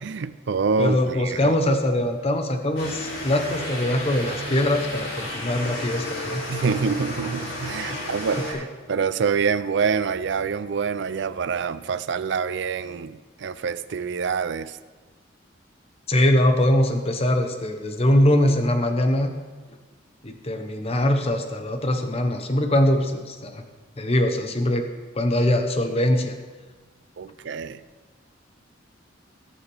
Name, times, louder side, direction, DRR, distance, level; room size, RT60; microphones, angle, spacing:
voice 1, 0.0-1.5 6.5-14.8 27.2-27.8, right 5 dB, 60° right, 14 dB, 0.4 m, -26 dB
voice 2, 0.8-6.4 7.9-8.1 16.1-19.3 20.2-23.6 24.0-24.9 25.1-26.4, left 1 dB, 30° left, 6 dB, 0.9 m, -22 dB
sound 1, 2.8-8.5, left 1 dB, 80° left, 3.6 m, -32 dB
18.0 x 7.1 x 3.5 m, 1.3 s
head